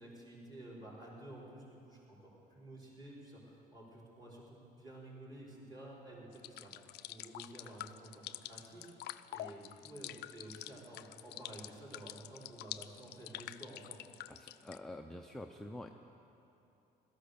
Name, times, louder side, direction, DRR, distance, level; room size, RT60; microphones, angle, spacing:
voice 1, 0.0-6.7 7.1-14.0, right 1 dB, 25° right, -5 dB, 4.8 m, -52 dB
sound 1, 6.3-14.8, left 15 dB, 75° left, 0.5 m, -47 dB
voice 2, 14.3-15.9, left 1 dB, ahead, 3 dB, 0.6 m, -47 dB
16.5 x 13.0 x 6.7 m, 2.9 s
cardioid pair, 110°, 17 cm